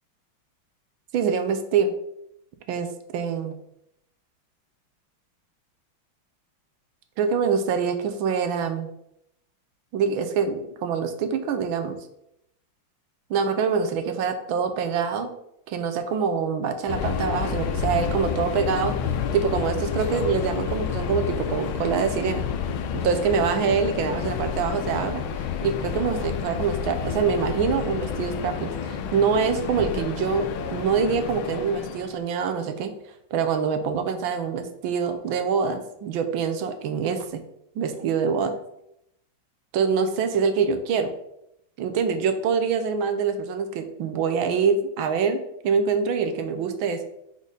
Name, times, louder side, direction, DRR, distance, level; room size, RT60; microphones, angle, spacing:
voice 1, 1.1-1.9 2.7-3.6 7.2-8.9 9.9-12.0 13.3-15.3 15.7-18.9 19.3-22.4 23.0-25.2 25.6-32.9 33.3-37.4 37.7-38.5 39.7-41.1 41.8-47.0, right 6 dB, 75° right, 8 dB, 1.5 m, -25 dB
Subway metro underground, 16.9-32.2, left 7 dB, 80° left, 1.4 m, -29 dB
4.9 x 4.3 x 5.2 m, 0.79 s
omnidirectional pair, 2.3 m